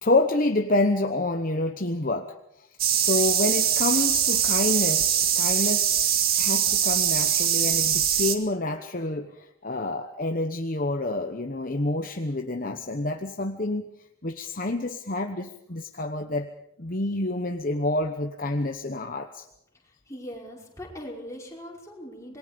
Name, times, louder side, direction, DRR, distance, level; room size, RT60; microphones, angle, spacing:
voice 1, 0.0-2.7 3.0-6.1 6.4-13.9 14.2-16.5 16.8-19.5, left 2 dB, 40° left, 6 dB, 1.1 m, -28 dB
sound 1, 2.8-8.4, right 9 dB, 45° right, 2.0 m, -23 dB
voice 2, 19.8-22.4, equal, 15° left, -2 dB, 5.2 m, -40 dB
27.0 x 22.0 x 5.3 m, 0.80 s
head